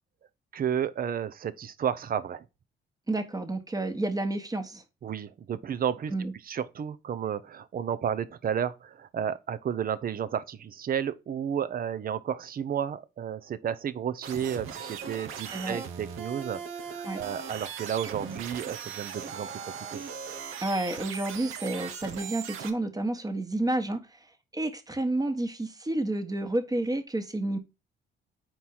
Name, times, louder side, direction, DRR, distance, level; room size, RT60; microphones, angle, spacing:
voice 1, 0.5-2.4 5.0-6.1 6.4-19.6 19.9-20.0, right 8 dB, 45° right, 0.7 m, -32 dB
voice 2, 3.1-4.8 6.1-6.3 15.5-15.8 17.0-17.2 20.6-24.1 24.5-27.6, right 2 dB, 20° right, 1.3 m, -30 dB
sound 1, 14.2-22.7, right 7 dB, 85° right, 1.0 m, -39 dB
4.6 x 4.5 x 5.5 m
cardioid pair, 90°, 20 cm